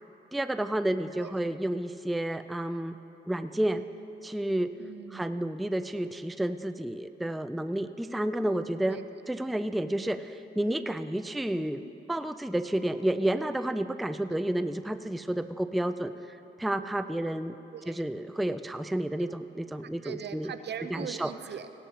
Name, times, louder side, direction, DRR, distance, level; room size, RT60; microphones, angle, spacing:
voice 1, 0.3-3.0 3.3-3.8 4.2-4.7 5.1-9.0 9.3-11.8 12.1-17.6 17.9-20.5 20.9-21.3, right 1 dB, ahead, 11 dB, 0.4 m, -30 dB
voice 2, 4.8-5.2 8.9-9.0 11.8-11.9 17.7-18.0 19.2-19.3 20.0-21.7, right 8 dB, 65° right, 10 dB, 0.6 m, -40 dB
16.5 x 12.5 x 2.9 m, 2.9 s
cardioid pair, 60°, 20 cm